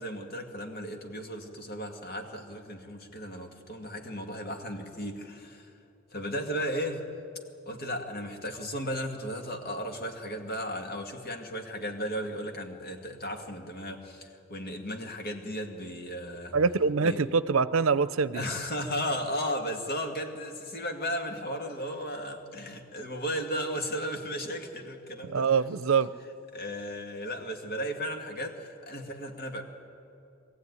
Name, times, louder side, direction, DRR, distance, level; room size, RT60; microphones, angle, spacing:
voice 1, 0.0-5.7 6.1-7.0 7.7-16.6 17.0-17.2 18.3-25.5 26.5-29.6, equal, 50° left, 3 dB, 2.2 m, -35 dB
voice 2, 16.5-18.4 25.3-26.1, right 5 dB, 80° right, 16 dB, 0.6 m, -24 dB
22.0 x 15.5 x 9.7 m, 2.8 s
head